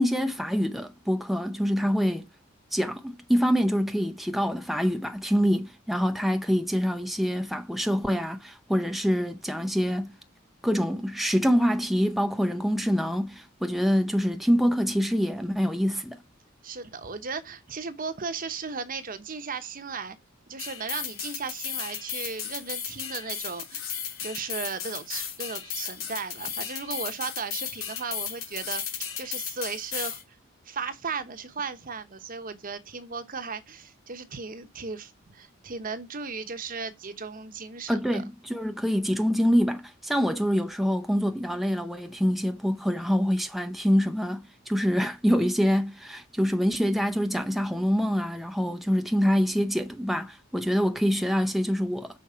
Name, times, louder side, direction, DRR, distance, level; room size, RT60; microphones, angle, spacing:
voice 1, 0.0-2.3 2.7-10.1 10.6-16.2 37.9-52.2, equal, ahead, 0.5 m, -25 dB
voice 2, 16.6-20.2 20.5-28.8 29.2-30.4 30.6-38.2, right 5 dB, 45° right, 1.0 m, -36 dB
sound 1, 20.6-30.2, left 8 dB, 80° left, 3.2 m, -35 dB
6.5 x 4.6 x 5.6 m
head